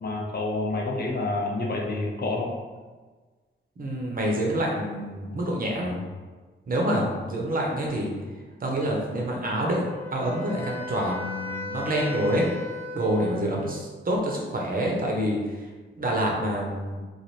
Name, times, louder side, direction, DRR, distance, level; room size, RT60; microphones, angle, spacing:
voice 1, 0.0-2.6, left 2 dB, 50° left, -1 dB, 0.6 m, -28 dB
voice 2, 3.8-6.0 6.7-8.1 8.6-9.8 10.1-12.5 12.9-15.4 16.0-17.0, right 1 dB, 45° right, -2 dB, 0.7 m, -27 dB
Wind instrument woodwind instrument, 9.9-13.9, left 3 dB, 10° left, 0.3 m, -37 dB
3.2 x 2.5 x 4.1 m, 1.4 s
wide cardioid pair, 160°, 20 cm